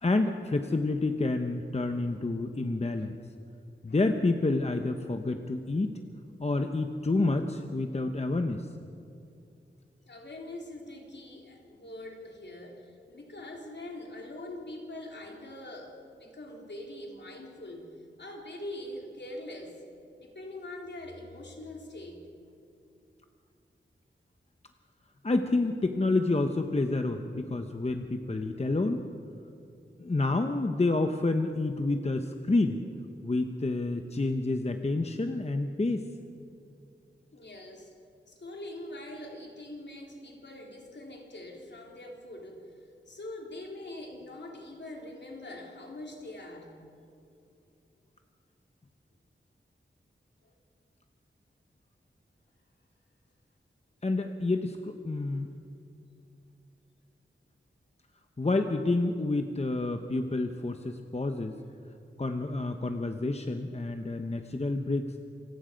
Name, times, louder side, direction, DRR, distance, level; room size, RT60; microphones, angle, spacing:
voice 1, 0.0-3.1 3.8-6.0 6.4-8.7 25.2-29.0 30.0-32.8 33.2-36.1 54.0-55.5 58.4-61.6 62.2-65.2, left 2 dB, 30° left, 6 dB, 0.9 m, -29 dB
voice 2, 10.1-17.9 18.2-19.8 20.2-22.2 37.3-37.9 38.3-42.6 43.1-46.8 50.4-50.5, left 1 dB, 60° left, 0 dB, 3.7 m, -43 dB
27.5 x 18.0 x 5.2 m, 2.6 s
wide cardioid pair, 90°, 20 cm